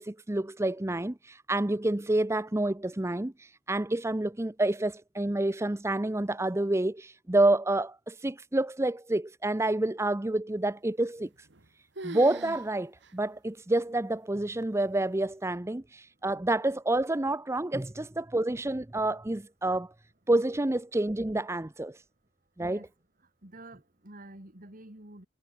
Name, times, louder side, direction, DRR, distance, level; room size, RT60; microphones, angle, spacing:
voice 1, 0.0-11.5 12.0-19.9 20.3-22.0 22.6-22.8, right 2 dB, 15° right, 0.6 m, -28 dB
sound 1, 11.2-11.7 12.0-12.7 13.0-13.1 13.8-13.9 14.6-15.0, right 2 dB, 60° right, 2.1 m, -42 dB
voice 2, 23.4-25.3, right 1 dB, 45° right, 3.2 m, -48 dB
head